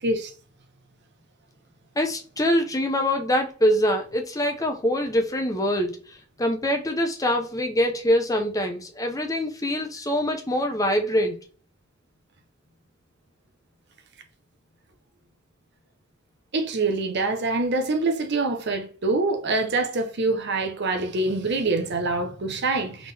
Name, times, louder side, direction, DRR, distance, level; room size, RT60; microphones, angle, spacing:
voice 1, 2.0-11.4, equal, 15° left, 0.7 m, -24 dB
voice 2, 16.5-23.1, right 3 dB, 55° right, 0.8 m, -25 dB
3.6 x 3.6 x 3.4 m
head